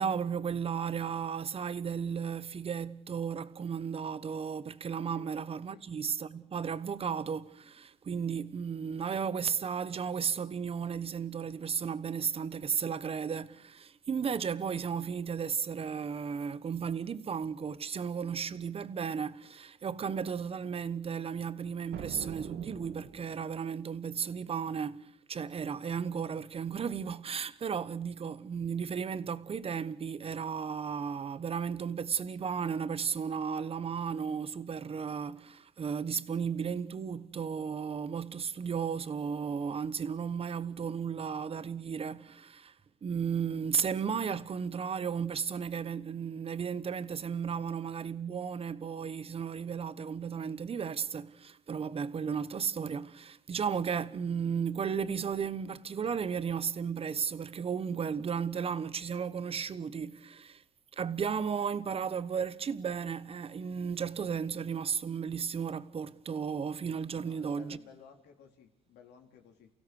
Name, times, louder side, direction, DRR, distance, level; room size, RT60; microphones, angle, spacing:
voice 1, 0.0-42.7 43.0-60.6 60.9-67.8, right 6 dB, 35° right, 1.2 m, -34 dB
sound 1, 21.9-23.7, right 9 dB, 75° right, 2.4 m, -43 dB
voice 2, 67.1-69.7, left 7 dB, 80° left, 4.0 m, -56 dB
29.5 x 16.5 x 6.5 m
cardioid pair, 110°, 17 cm